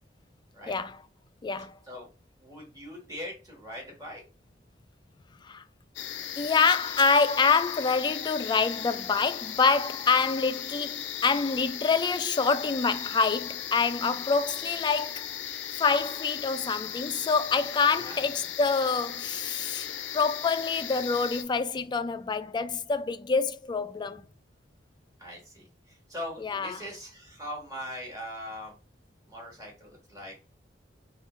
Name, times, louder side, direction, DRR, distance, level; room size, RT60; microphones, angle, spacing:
voice 1, 0.7-1.0 1.4-1.7 5.4-5.6 6.4-15.3 15.8-19.9 20.1-24.2 26.4-26.8, left 5 dB, 25° left, 0.3 m, -26 dB
voice 2, 2.4-4.2 10.3-10.4 17.9-18.2 25.2-28.8 29.3-30.3, equal, 20° right, 1.5 m, -41 dB
sound 1, 6.0-21.4, left 10 dB, 85° left, 0.5 m, -37 dB
5.3 x 2.4 x 3.0 m
head